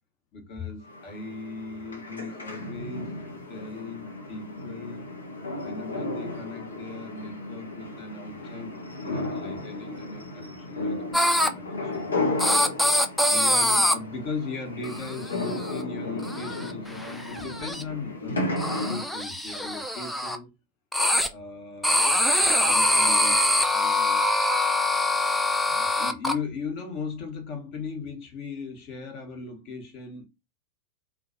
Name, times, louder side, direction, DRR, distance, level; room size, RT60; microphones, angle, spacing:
voice 1, 0.3-3.2 3.5-5.1 5.6-12.1 13.3-18.5 18.8-20.5 21.3-22.2 22.6-24.2 25.7-30.2, left 4 dB, 40° left, 0.9 m, -38 dB
sound 1, 0.9-19.0, left 2 dB, 75° left, 0.6 m, -34 dB
sound 2, 11.1-11.5 12.4-13.9 14.8-15.1 15.4-15.8 16.2-16.7 17.0-17.8 18.6-20.4 20.9-21.3 21.8-26.3, left 1 dB, ahead, 0.3 m, -23 dB
2.4 x 2.1 x 2.5 m
figure-of-eight pair, 90°, 0 cm